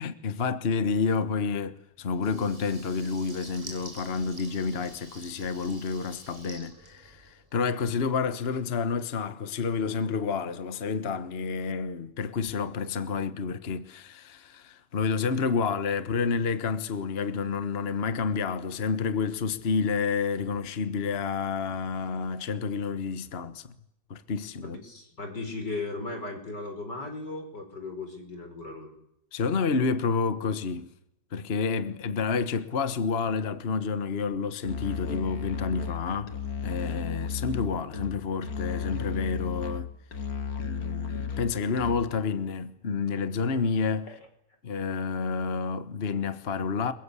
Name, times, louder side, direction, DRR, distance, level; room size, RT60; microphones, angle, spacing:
voice 1, 0.0-23.7 24.1-24.8 29.3-30.9 31.3-36.3 36.6-39.9 40.6-44.1 44.6-46.9, left 5 dB, 40° left, 1.4 m, -29 dB
Water tap faucet / Liquid, 2.1-7.6, right 1 dB, 10° right, 7.0 m, -48 dB
voice 2, 24.6-29.0 31.9-32.0 44.1-44.2, left 3 dB, 80° left, 5.8 m, -37 dB
Musical instrument, 34.6-42.2, left 6 dB, 60° left, 2.3 m, -34 dB
30.0 x 22.0 x 8.4 m
omnidirectional pair, 1.8 m